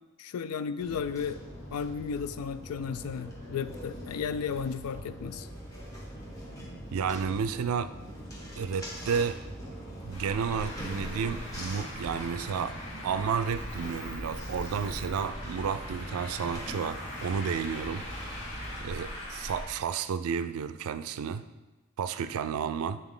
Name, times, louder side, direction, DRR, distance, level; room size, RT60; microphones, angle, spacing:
voice 1, 0.2-1.4 1.7-5.5, left 6 dB, 85° left, 13 dB, 0.4 m, -34 dB
sound 1, 0.8-18.9, equal, 15° left, 1.0 m, -42 dB
voice 2, 6.9-7.9 8.6-9.4 10.0-12.8 13.0-18.0 18.8-21.4 22.0-23.0, right 6 dB, 80° right, 12 dB, 0.3 m, -31 dB
Traffic noise roadway noise, 10.1-19.6, left 1 dB, 65° left, 1.9 m, -41 dB
8.1 x 4.0 x 3.8 m, 1.1 s
head